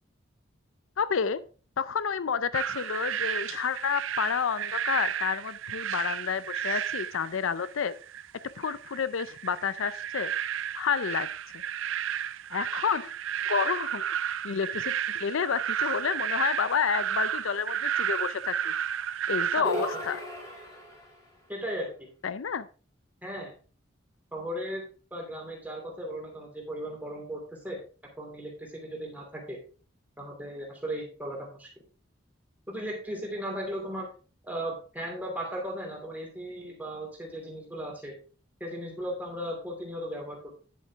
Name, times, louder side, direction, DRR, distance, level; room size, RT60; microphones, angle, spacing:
voice 1, 1.0-1.4 1.8-7.9 8.6-10.3 10.7-11.3 12.5-13.1 13.5-18.7 19.3-20.2 22.2-22.7, left 6 dB, 85° left, 15 dB, 0.5 m, -30 dB
sound 1, 2.5-19.6, right 9 dB, 80° right, 0.5 m, -32 dB
sound 2, 19.6-21.2, equal, 15° left, 2.7 m, -35 dB
voice 2, 21.5-22.1 23.2-23.5 24.3-24.8 25.1-27.8 28.2-29.6 30.2-31.7 32.7-34.1 34.4-38.2 38.6-40.6, equal, 10° right, -1 dB, 2.7 m, -36 dB
9.5 x 7.7 x 3.5 m, 0.37 s
head